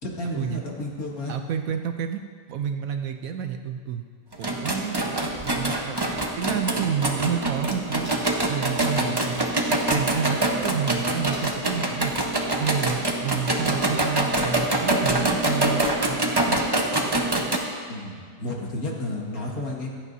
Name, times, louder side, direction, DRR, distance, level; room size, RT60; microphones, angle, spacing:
voice 1, 0.0-1.4 17.9-19.9, left 1 dB, 55° left, -2 dB, 2.3 m, -32 dB
voice 2, 1.3-2.2 2.5-4.0 4.4-5.0 5.4-8.1 8.5-9.5 9.9-12.1 12.5-16.6, right 7 dB, 65° right, 6 dB, 0.9 m, -29 dB
sound 1, 4.3-17.6, right 1 dB, 20° right, 0.8 m, -25 dB
sound 2, 8.0-11.6 12.5-13.1 13.4-13.8, left 1 dB, 80° left, 4.5 m, -46 dB
25.5 x 9.1 x 2.7 m, 2.1 s
omnidirectional pair, 1.8 m